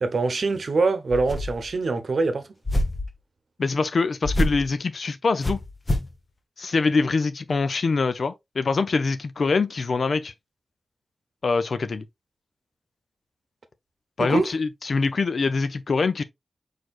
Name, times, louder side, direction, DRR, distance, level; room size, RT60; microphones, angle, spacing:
voice 1, 0.0-2.5 14.2-14.5, right 3 dB, 65° right, 0.9 m, -24 dB
sound 1, 1.1-1.7 2.6-3.1 4.2-4.7 5.4-6.1, left 1 dB, 30° left, 1.0 m, -26 dB
voice 2, 3.6-5.6 6.6-10.3 11.4-12.0 14.2-16.2, left 4 dB, 65° left, 0.5 m, -24 dB
4.6 x 4.5 x 2.4 m
wide cardioid pair, 105°, 0 cm